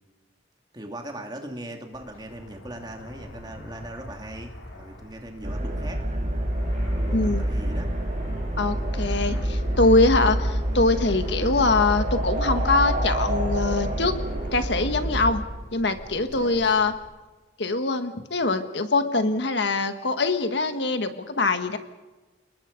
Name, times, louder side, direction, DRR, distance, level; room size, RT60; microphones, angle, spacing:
voice 1, 0.7-6.0 7.1-7.9 16.3-16.6, right 1 dB, 20° right, 3 dB, 2.6 m, -39 dB
Fixed-wing aircraft airplane, 1.9-17.0, equal, 85° left, 5.2 m, -43 dB
sound 1, 5.4-15.3, right 1 dB, 40° right, 4.2 m, -27 dB
voice 2, 7.1-7.4 8.6-14.1 14.5-15.4 15.7-16.9 17.6-21.8, left 3 dB, 65° left, 8 dB, 1.6 m, -23 dB
30.0 x 20.0 x 5.3 m, 1.2 s
head